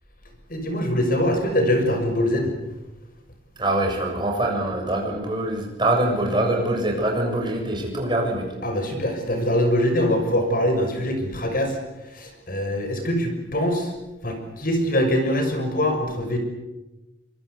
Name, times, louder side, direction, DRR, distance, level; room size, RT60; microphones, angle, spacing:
voice 1, 0.5-2.5 8.6-11.8 12.1-13.9 14.2-16.4, left 1 dB, 45° left, 5 dB, 6.3 m, -23 dB
voice 2, 3.6-8.5, right 1 dB, 25° right, 1 dB, 7.0 m, -24 dB
25.0 x 23.0 x 8.3 m, 1.0 s
head